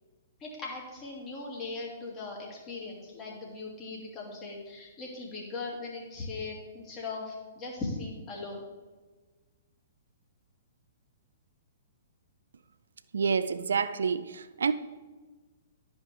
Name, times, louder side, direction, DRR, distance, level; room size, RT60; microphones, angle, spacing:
voice 1, 0.4-8.7, left 3 dB, 20° left, 2.5 m, -39 dB
voice 2, 13.1-14.7, right 5 dB, 65° right, 0.4 m, -28 dB
13.0 x 5.4 x 3.4 m
figure-of-eight pair, 115°, 0 cm